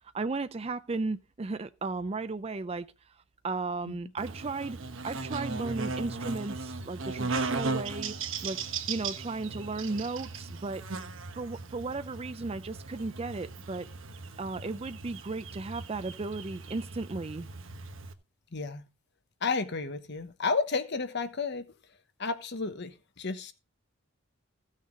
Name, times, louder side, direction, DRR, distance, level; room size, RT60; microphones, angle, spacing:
voice 1, 0.1-2.9 3.4-4.8 5.0-8.1 8.4-8.6 8.9-10.8 11.3-13.9 14.4-17.5, right 3 dB, 30° right, 0.4 m, -35 dB
Buzz, 4.2-18.1, right 4 dB, 65° right, 1.1 m, -37 dB
voice 2, 18.5-18.8 19.4-21.6 22.2-23.5, left 4 dB, 55° left, 1.1 m, -32 dB
15.5 x 6.5 x 3.8 m
head